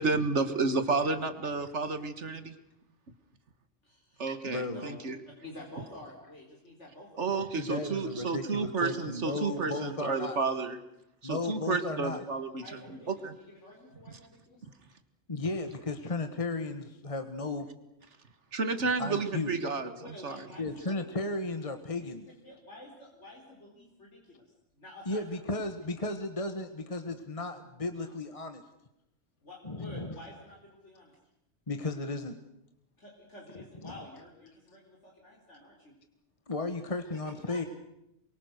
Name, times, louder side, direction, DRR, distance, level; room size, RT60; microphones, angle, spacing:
voice 1, 0.0-2.5 4.2-5.2 7.2-10.8 11.2-13.3 18.5-19.9 20.2-20.4, right 4 dB, 70° right, 10 dB, 2.0 m, -31 dB
voice 2, 3.8-4.2 4.6-4.9 5.4-7.3 12.6-14.6 19.8-21.1 22.4-24.4 24.7-25.4 28.0-28.2 29.4-31.1 33.0-35.9 37.5-37.7, left 1 dB, 70° left, -1 dB, 4.4 m, -49 dB
voice 3, 4.4-4.8 7.5-10.4 11.2-12.2 15.3-17.7 19.0-19.5 20.6-22.3 25.0-28.6 29.6-30.1 31.7-32.4 33.8-33.9 36.5-37.7, left 2 dB, 30° left, 8 dB, 1.5 m, -34 dB
28.0 x 23.5 x 6.6 m, 0.85 s
omnidirectional pair, 1.2 m